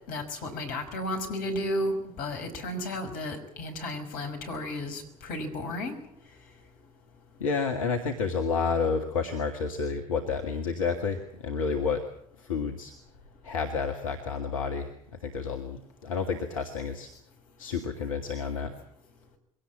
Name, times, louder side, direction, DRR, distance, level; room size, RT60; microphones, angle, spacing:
voice 1, 0.1-6.0, left 1 dB, 55° left, 6 dB, 5.6 m, -33 dB
voice 2, 7.4-12.0 12.4-12.9 13.4-17.1 17.6-18.7, left 5 dB, 75° left, 4 dB, 2.0 m, -30 dB
22.5 x 18.0 x 8.6 m, 0.71 s
figure-of-eight pair, 60°, 17 cm